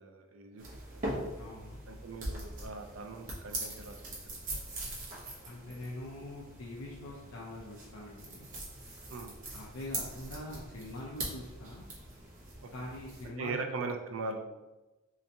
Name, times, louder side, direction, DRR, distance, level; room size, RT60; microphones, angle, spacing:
voice 1, 0.0-1.3 1.9-4.2 4.5-4.6 9.1-9.3 12.6-12.9 13.4-14.5, right 3 dB, 70° right, 4 dB, 0.4 m, -40 dB
sound 1, 0.6-13.3, right 1 dB, 40° right, 0.9 m, -42 dB
voice 2, 1.4-1.8 5.4-8.5 9.5-11.9 12.7-13.6, left 1 dB, 75° left, -4 dB, 0.6 m, -44 dB
3.3 x 2.9 x 2.7 m, 1.1 s
head